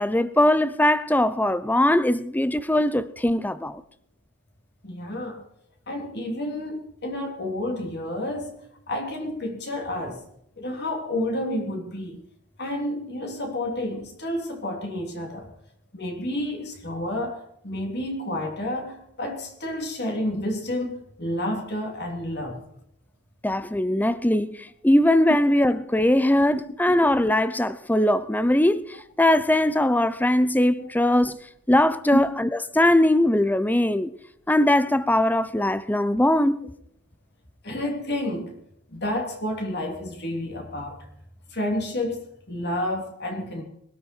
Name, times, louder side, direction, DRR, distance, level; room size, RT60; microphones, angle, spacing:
voice 1, 0.0-3.8 23.4-31.4 31.7-34.1 34.5-36.6, left 1 dB, 10° left, 0.6 m, -21 dB
voice 2, 4.8-5.4 5.9-8.6 8.9-10.2 10.6-12.2 12.6-15.5 15.9-22.6 25.3-25.4 30.8-30.9 32.1-32.2 37.6-38.6 38.9-41.1 41.5-43.6, left 1 dB, 50° left, 3.2 m, -30 dB
22.0 x 12.5 x 4.6 m
head